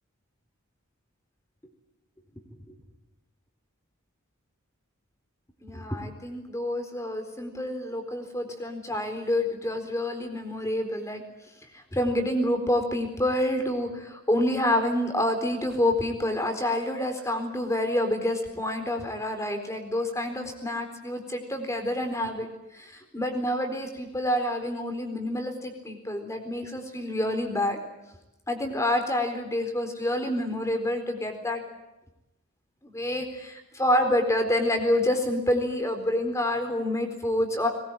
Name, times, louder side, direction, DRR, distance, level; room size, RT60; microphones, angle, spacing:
voice 1, 5.6-11.2 11.7-27.8 28.5-31.6 32.8-37.7, left 1 dB, 15° left, 6 dB, 4.1 m, -28 dB
22.0 x 21.0 x 9.2 m, 0.96 s
head